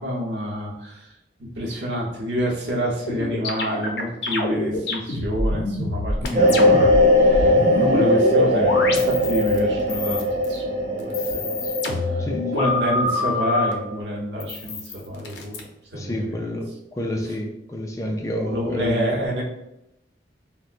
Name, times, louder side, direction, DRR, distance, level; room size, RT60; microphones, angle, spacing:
voice 1, 0.0-12.3 12.5-15.7 15.9-16.4 18.4-19.4, equal, 80° right, -3 dB, 0.9 m, -28 dB
sound 1, 3.1-9.6 9.9-10.6 11.0-13.7 14.4-15.6, left 2 dB, 75° left, 0.5 m, -26 dB
voice 2, 6.2-6.6 7.9-8.0 12.2-12.5 15.9-19.2, equal, 20° left, 1 dB, 0.3 m, -29 dB
sound 2, 6.3-14.0, left 1 dB, 40° right, 0.8 m, -20 dB
4.0 x 2.1 x 2.4 m, 0.87 s
head